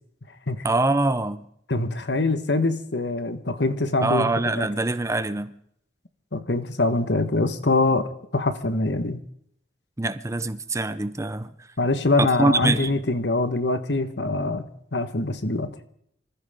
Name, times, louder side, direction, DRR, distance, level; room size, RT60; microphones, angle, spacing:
voice 1, 0.6-1.5 4.0-5.5 10.0-11.5 12.2-12.9, right 2 dB, 15° right, 0.6 m, -24 dB
voice 2, 1.7-4.3 4.6-4.7 6.3-8.1 8.3-9.2 11.8-14.6 14.9-15.7, left 2 dB, 70° left, 1.4 m, -24 dB
26.0 x 14.5 x 3.7 m
head